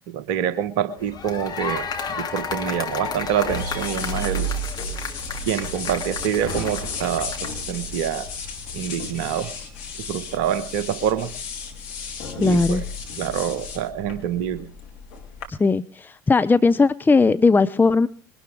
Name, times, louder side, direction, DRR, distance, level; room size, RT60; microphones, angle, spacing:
voice 1, 0.1-4.5 5.5-8.3 8.7-9.5 10.0-11.3 12.4-12.8 13.2-14.7, right 9 dB, 65° right, 14 dB, 1.2 m, -26 dB
sound 1, 1.0-7.6, left 6 dB, 35° left, 2.7 m, -32 dB
sound 2, 3.0-15.5, left 2 dB, 60° left, 3.2 m, -33 dB
voice 2, 12.4-12.8 15.5-18.1, left 4 dB, 15° left, 13 dB, 0.7 m, -18 dB
22.0 x 12.5 x 3.5 m, 0.40 s
figure-of-eight pair, 60°, 12 cm